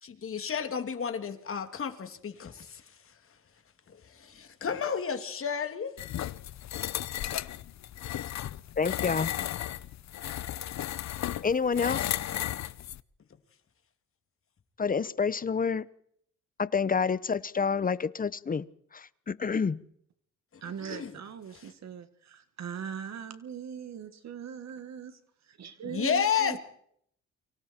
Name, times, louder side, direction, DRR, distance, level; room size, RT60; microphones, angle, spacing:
voice 1, 0.0-2.8 3.9-5.9 20.8-21.1 25.8-26.6, left 7 dB, 45° left, 2.7 m, -32 dB
sound 1, 6.0-13.0, left 12 dB, 65° left, 0.9 m, -34 dB
voice 2, 8.8-9.3 11.4-12.1 14.8-15.9 16.6-18.7 18.9-19.8, left 5 dB, 30° left, 1.0 m, -28 dB
voice 3, 20.6-25.2 25.5-26.6, right 8 dB, 60° right, 2.0 m, -40 dB
29.5 x 25.0 x 4.5 m
cardioid pair, 90°, 30 cm